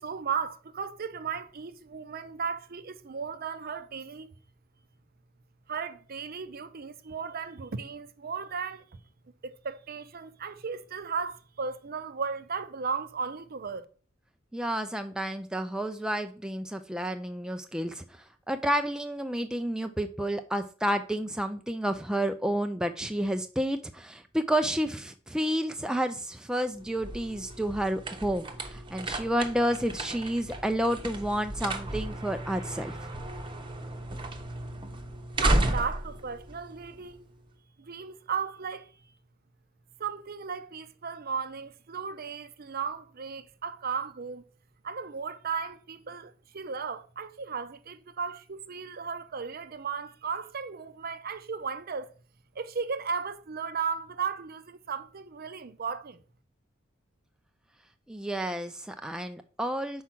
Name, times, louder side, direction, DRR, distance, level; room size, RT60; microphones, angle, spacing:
voice 1, 0.0-4.3 5.7-9.0 9.4-13.9 35.4-37.2 37.8-38.9 40.0-44.4 44.8-52.1 52.6-56.2, right 5 dB, 50° right, 0.6 m, -35 dB
voice 2, 14.5-32.9 58.1-60.0, equal, 5° right, 0.4 m, -30 dB
sound 1, 26.7-37.4, right 1 dB, 25° right, 0.9 m, -34 dB
5.6 x 4.7 x 6.0 m
head